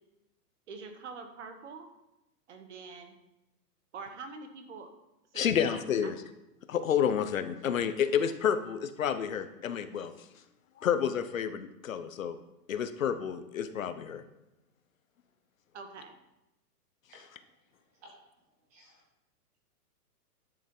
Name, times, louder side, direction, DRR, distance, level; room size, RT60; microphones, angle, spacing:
voice 1, 0.7-1.9 2.5-3.1 3.9-4.9 5.3-6.1 15.7-16.1, right 4 dB, 45° right, 7 dB, 1.4 m, -45 dB
voice 2, 5.3-6.2 6.7-10.1 10.8-12.4 12.7-14.2, left 8 dB, 55° left, 11 dB, 0.9 m, -30 dB
voice 3, 17.1-18.1 18.7-19.0, right 1 dB, 10° right, 0 dB, 0.8 m, -58 dB
11.0 x 7.0 x 5.4 m, 0.93 s
hypercardioid pair, 175°, 48 cm